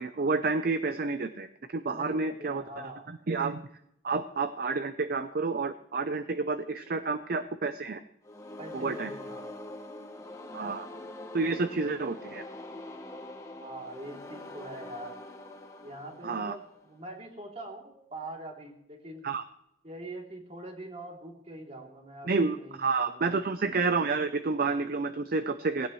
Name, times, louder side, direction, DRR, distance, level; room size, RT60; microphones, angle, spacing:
voice 1, 0.0-1.5 1.7-3.7 4.0-8.0 8.7-9.1 10.5-10.9 11.3-12.4 16.2-16.6 19.2-19.4 22.2-25.9, right 4 dB, 55° right, 10 dB, 0.6 m, -30 dB
voice 2, 1.9-3.0 6.7-6.9 8.6-9.7 13.6-15.2 15.8-19.3 19.8-23.4, right 1 dB, 35° right, 0 dB, 2.9 m, -44 dB
sound 1, 8.2-17.1, left 1 dB, 20° left, 1.3 m, -44 dB
18.5 x 17.0 x 3.1 m, 0.76 s
head